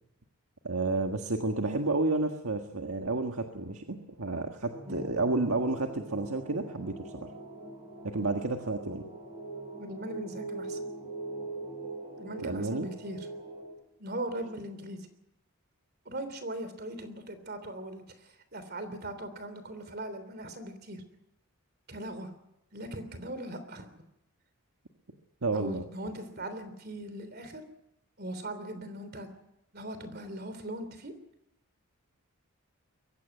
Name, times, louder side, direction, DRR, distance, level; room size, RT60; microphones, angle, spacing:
voice 1, 0.6-7.3 8.0-9.0 12.4-12.9 25.4-25.8, right 2 dB, 80° right, 4 dB, 1.6 m, -31 dB
sound 1, 4.7-13.7, right 2 dB, 20° right, 8.0 m, -42 dB
voice 2, 9.8-10.8 12.2-13.3 14.0-15.1 16.0-21.0 21.9-22.3 22.7-24.0 25.5-27.6 28.2-29.3 29.7-31.1, right 1 dB, 45° right, 10 dB, 3.3 m, -40 dB
22.5 x 16.0 x 9.3 m, 0.86 s
head